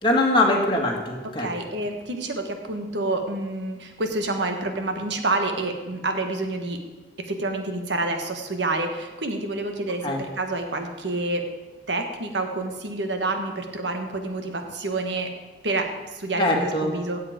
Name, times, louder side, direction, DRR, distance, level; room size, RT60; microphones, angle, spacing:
voice 1, 0.0-1.5 10.0-10.2 16.4-16.9, left 2 dB, 25° left, 0 dB, 1.9 m, -22 dB
voice 2, 1.4-6.8 7.2-11.4 11.9-15.3 15.6-17.2, right 2 dB, 90° right, 5 dB, 1.6 m, -28 dB
16.0 x 7.9 x 5.2 m, 1.3 s
head